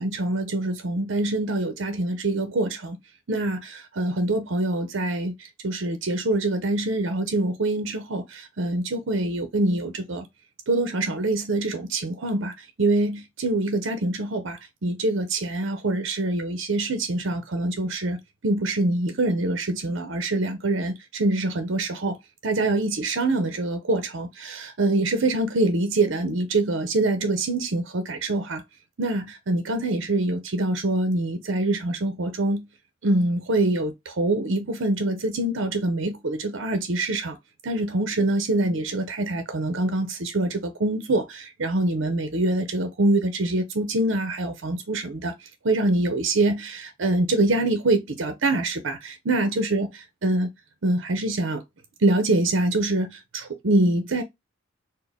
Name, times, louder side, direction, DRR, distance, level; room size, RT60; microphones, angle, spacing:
voice 1, 0.0-3.0 3.3-5.3 5.6-10.3 10.7-22.2 22.4-28.6 29.0-32.7 33.0-37.4 37.6-45.3 45.6-49.9 50.2-50.5 50.8-51.6 52.0-54.2, right 2 dB, 65° right, 0.7 m, -25 dB
4.3 x 2.1 x 3.4 m
head